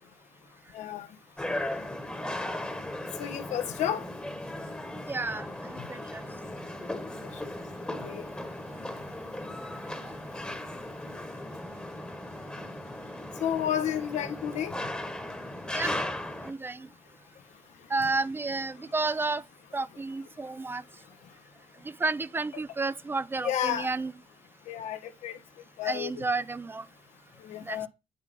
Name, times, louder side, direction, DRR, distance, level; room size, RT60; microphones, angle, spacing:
voice 1, 0.7-1.1 3.2-4.0 8.0-8.2 13.4-14.7 23.4-23.9 24.7-25.4 25.8-26.3 27.4-27.9, left 10 dB, 85° left, 1.1 m, -31 dB
sound 1, 1.4-16.5, left 1 dB, 10° left, 1.1 m, -37 dB
voice 2, 5.1-5.5 5.9-6.2 10.0-10.1 15.7-16.0 16.4-16.9 17.9-19.4 19.7-20.8 21.8-24.1 25.8-26.8 27.7-27.9, right 3 dB, 20° right, 0.3 m, -31 dB
8.2 x 3.3 x 5.4 m
cardioid pair, 110°, 12 cm